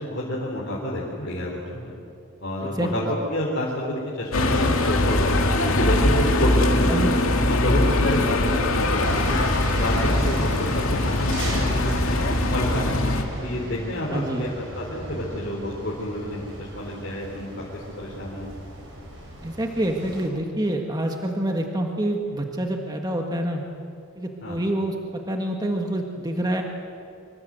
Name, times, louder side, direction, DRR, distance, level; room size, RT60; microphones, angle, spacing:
voice 1, 0.0-1.9 2.4-5.3 5.8-9.4 9.8-13.0 13.4-14.5 14.7-18.5 24.4-24.6, left 1 dB, 50° left, -5 dB, 4.3 m, -29 dB
sound 1, 4.3-13.2, left 1 dB, 75° left, 2.4 m, -22 dB
sound 2, 9.0-20.2, equal, 60° right, 6.9 m, -36 dB
voice 2, 14.1-14.5 19.4-23.6 24.1-26.6, right 1 dB, 20° right, 2 dB, 1.6 m, -27 dB
25.5 x 24.5 x 7.9 m, 2.6 s
head